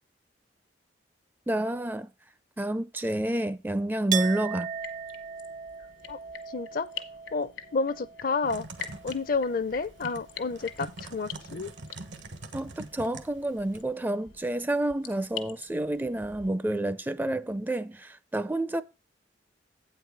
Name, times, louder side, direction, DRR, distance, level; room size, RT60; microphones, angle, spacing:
voice 1, 1.5-2.1 2.6-4.7 12.5-18.8, right 1 dB, 10° right, 0.4 m, -29 dB
Chink clink, 4.1-9.6 9.9-10.8, right 9 dB, 45° right, 0.7 m, -38 dB
sound 1, 4.7-16.5, left 9 dB, 75° left, 1.3 m, -46 dB
voice 2, 6.5-6.9 7.3-8.7 9.0-11.7, left 4 dB, 50° left, 0.5 m, -30 dB
Typing, 8.4-13.8, right 2 dB, 80° right, 1.3 m, -44 dB
8.7 x 4.7 x 6.0 m
head